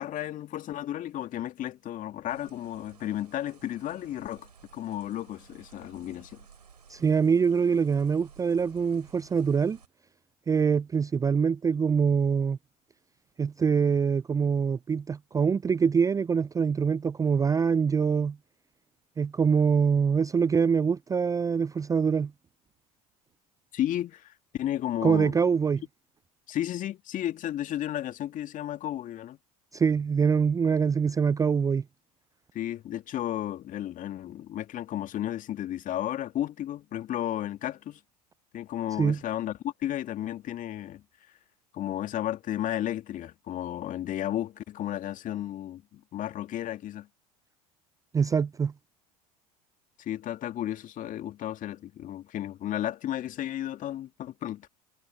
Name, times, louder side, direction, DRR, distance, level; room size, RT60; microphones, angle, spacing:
voice 1, 0.0-6.4 23.7-25.4 26.5-29.4 32.5-38.0 38.5-41.0 41.7-47.1 50.0-54.7, left 12 dB, 40° left, 2.2 m, -33 dB
sound 1, 2.3-9.9, right 6 dB, 85° right, 4.1 m, -55 dB
voice 2, 6.9-9.8 10.5-12.6 13.4-18.4 19.2-22.3 25.0-25.8 29.7-31.8 39.0-39.2 48.1-48.7, right 6 dB, 15° right, 0.5 m, -24 dB
hypercardioid pair, 80°, 20 cm